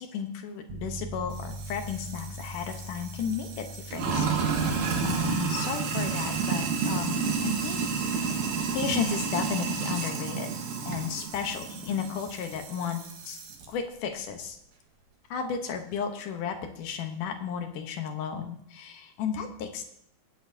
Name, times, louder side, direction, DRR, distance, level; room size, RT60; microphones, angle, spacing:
voice 1, 0.0-4.3 4.7-8.4 8.7-10.5 10.9-13.4 13.7-14.6 15.3-19.8, left 7 dB, 70° left, 5 dB, 2.3 m, -34 dB
sound 1, 0.7-11.2, equal, 80° right, 1.5 m, -44 dB
Sink (filling or washing), 1.3-13.7, right 5 dB, 65° right, 2.7 m, -31 dB
21.0 x 8.5 x 2.7 m, 0.77 s
omnidirectional pair, 4.4 m